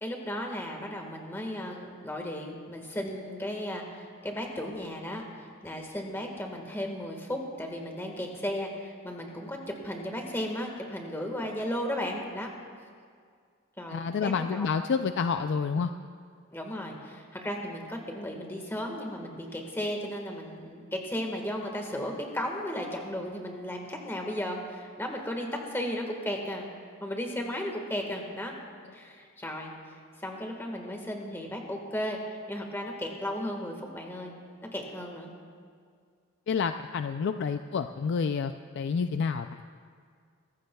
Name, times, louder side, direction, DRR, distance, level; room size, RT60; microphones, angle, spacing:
voice 1, 0.0-12.5 13.8-14.8 15.7-15.9 16.5-26.7 27.0-28.5 28.9-29.7 30.2-34.3 34.6-35.3, equal, 10° left, 1 dB, 1.6 m, -35 dB
voice 2, 13.9-15.9 36.5-39.6, left 5 dB, 55° left, 8 dB, 0.4 m, -29 dB
23.5 x 14.0 x 2.3 m, 2.1 s
head